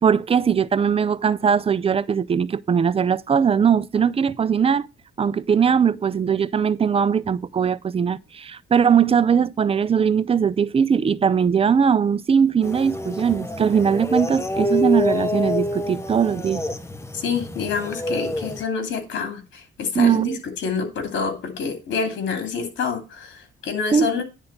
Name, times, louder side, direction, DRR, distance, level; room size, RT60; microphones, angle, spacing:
voice 1, 0.0-4.9 5.2-16.6 19.9-20.4 23.9-24.2, right 7 dB, 30° right, 0.5 m, -20 dB
sound 1, 12.6-18.6, left 1 dB, 15° left, 1.0 m, -27 dB
voice 2, 17.1-24.2, left 5 dB, 70° left, 2.7 m, -27 dB
10.0 x 3.8 x 7.2 m
cardioid pair, 90°, 20 cm